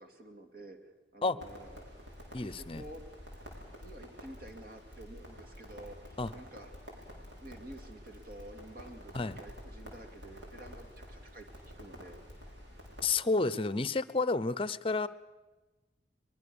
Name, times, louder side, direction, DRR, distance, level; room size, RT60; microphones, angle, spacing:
voice 1, 0.0-2.0 2.4-3.0 3.8-6.7 7.1-11.5 11.8-12.2, right 1 dB, 55° right, 5 dB, 2.5 m, -50 dB
Crackle, 1.4-13.1, equal, 90° right, 6.0 m, -49 dB
voice 2, 2.3-2.8 6.2-6.3 9.1-9.4 13.0-15.1, left 3 dB, 30° left, 17 dB, 0.7 m, -30 dB
22.5 x 22.0 x 7.1 m, 1.2 s
head